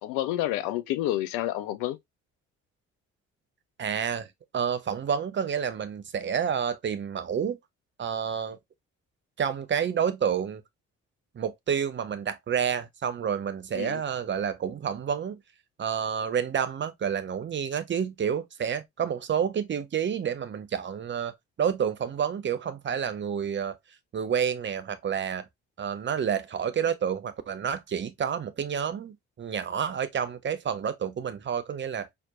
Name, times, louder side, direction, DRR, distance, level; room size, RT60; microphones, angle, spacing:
voice 1, 0.0-2.0 13.8-14.0, left 14 dB, 60° left, 0.5 m, -29 dB
voice 2, 3.8-4.3 4.5-7.6 8.0-8.6 9.4-10.6 11.3-15.4 15.8-23.8 24.1-25.5 25.8-32.1, right 8 dB, 30° right, 0.7 m, -29 dB
4.3 x 2.9 x 2.4 m
figure-of-eight pair, 40°, 37 cm